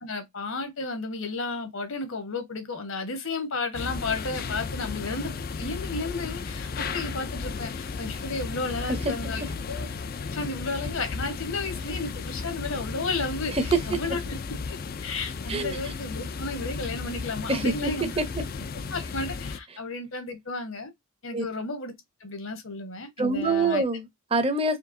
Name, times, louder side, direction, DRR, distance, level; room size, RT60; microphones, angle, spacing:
voice 1, 0.0-9.9 10.3-14.2 14.7-14.8 15.0-18.1 18.9-20.9 21.2-21.9 22.2-23.8, left 3 dB, 70° left, 1.3 m, -33 dB
sound 1, 3.7-19.6, left 4 dB, 45° left, 0.4 m, -34 dB
voice 2, 13.5-14.0 15.5-15.8 17.5-17.9 18.2-18.3 21.3-21.4 23.2-24.8, right 3 dB, 25° right, 0.7 m, -25 dB
4.5 x 3.0 x 2.6 m
head